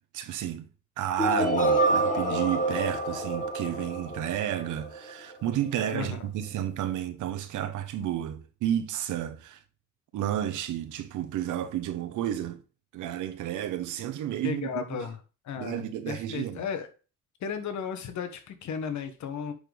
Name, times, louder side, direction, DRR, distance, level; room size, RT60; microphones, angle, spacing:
voice 1, 0.1-0.7 1.0-9.6 10.1-12.6 12.9-15.0 15.6-16.7, right 11 dB, 85° right, 1.1 m, -31 dB
sound 1, 1.2-5.1, right 2 dB, 25° left, 1.8 m, -27 dB
voice 2, 14.4-15.2 15.4-16.9 17.4-19.5, left 7 dB, 70° left, 1.4 m, -34 dB
9.9 x 4.1 x 3.4 m
cardioid pair, 90°, 30 cm